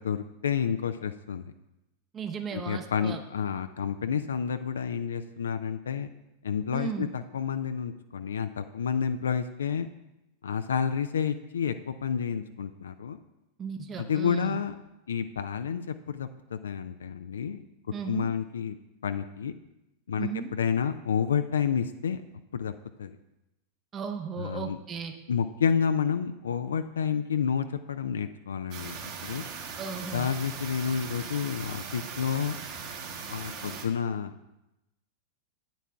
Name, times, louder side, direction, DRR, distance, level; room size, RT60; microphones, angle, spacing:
voice 1, 0.0-1.5 2.5-6.1 6.4-9.9 10.4-13.2 14.0-14.7 15.1-17.6 18.0-18.8 19.0-19.5 20.1-22.2 22.5-22.7 23.0-23.2 24.4-24.8 25.3-28.9 29.2-29.4 30.1-32.6 33.3-34.3, left 7 dB, 65° left, 10 dB, 0.3 m, -30 dB
voice 2, 2.1-3.2 6.7-7.1 13.6-14.6 17.9-18.3 20.2-20.5 23.9-25.1 29.8-30.3, right 6 dB, 25° right, 6 dB, 0.7 m, -35 dB
sound 1, 28.7-33.9, right 5 dB, 45° right, 1.2 m, -39 dB
13.0 x 9.1 x 2.3 m, 0.94 s
figure-of-eight pair, 90°, 0 cm